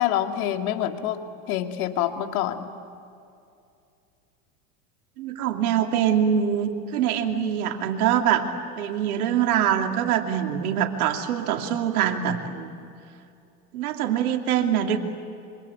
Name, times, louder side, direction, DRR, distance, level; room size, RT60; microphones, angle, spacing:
voice 1, 0.0-2.7, left 11 dB, 70° left, 6 dB, 2.4 m, -26 dB
voice 2, 5.2-8.5 8.8-12.9 13.7-15.0, right 9 dB, 75° right, 4 dB, 2.8 m, -24 dB
26.5 x 24.5 x 8.4 m, 2.5 s
hypercardioid pair, 105°, 44 cm